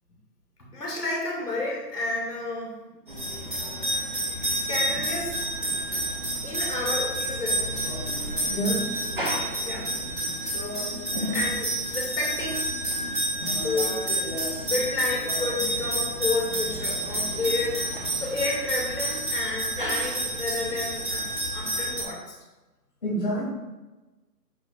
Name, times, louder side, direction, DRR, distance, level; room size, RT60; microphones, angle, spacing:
voice 1, 0.7-2.7 4.4-5.3 5.6-5.8 6.4-7.6 9.6-9.9 10.2-11.0 11.3-12.7 13.5-14.1 14.6-21.2 21.5-22.4, left 2 dB, 65° left, -3 dB, 2.4 m, -31 dB
sound 1, 3.1-22.0, right 1 dB, 30° right, 1.0 m, -29 dB
voice 2, 8.5-8.8 23.0-23.5, right 1 dB, 30° left, -7 dB, 2.4 m, -27 dB
8.9 x 6.1 x 2.4 m, 1.1 s
hypercardioid pair, 180°, 50 cm